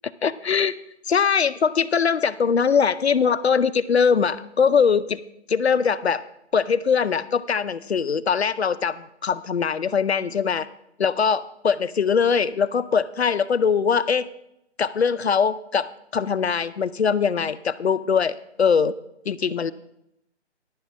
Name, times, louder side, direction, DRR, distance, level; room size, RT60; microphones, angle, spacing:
voice 1, 0.2-0.7 1.1-5.2 5.5-6.2 6.5-10.7 11.0-14.3 14.8-15.9 16.1-18.9 19.3-19.7, left 6 dB, 65° left, 14 dB, 0.6 m, -21 dB
11.0 x 9.6 x 4.2 m, 0.80 s
figure-of-eight pair, 145°, 35 cm